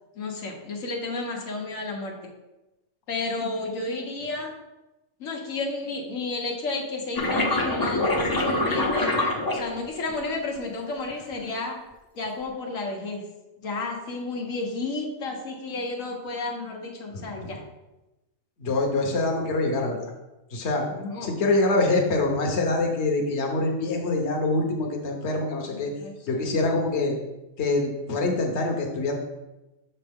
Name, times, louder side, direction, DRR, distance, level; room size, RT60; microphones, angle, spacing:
voice 1, 0.2-2.3 3.1-4.5 5.2-9.1 9.5-11.8 12.1-13.2 13.6-17.6 20.9-21.3 25.7-26.1, left 3 dB, 80° left, 1 dB, 1.4 m, -32 dB
sound 1, 7.2-10.1 11.0-11.4, left 2 dB, 20° left, 0.6 m, -25 dB
voice 2, 17.1-17.6 18.6-20.1 20.5-20.8 21.2-25.9 26.3-27.2 27.6-29.1, left 2 dB, 60° left, 1 dB, 1.2 m, -25 dB
6.9 x 5.5 x 3.5 m, 1.0 s
omnidirectional pair, 1.4 m